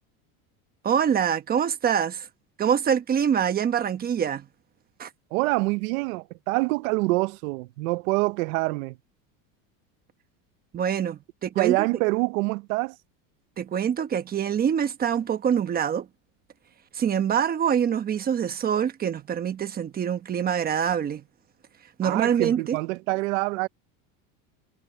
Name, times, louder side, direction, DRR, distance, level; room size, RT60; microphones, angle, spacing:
voice 1, 0.8-2.3 2.6-4.5 5.0-5.1 10.7-11.8 13.6-16.1 16.9-21.2 22.0-22.8, right 8 dB, 20° right, 1.1 m, -25 dB
voice 2, 5.3-9.0 11.6-13.0 22.0-23.7, right 23 dB, 75° right, 0.9 m, -26 dB
cardioid pair, 160°, 42 cm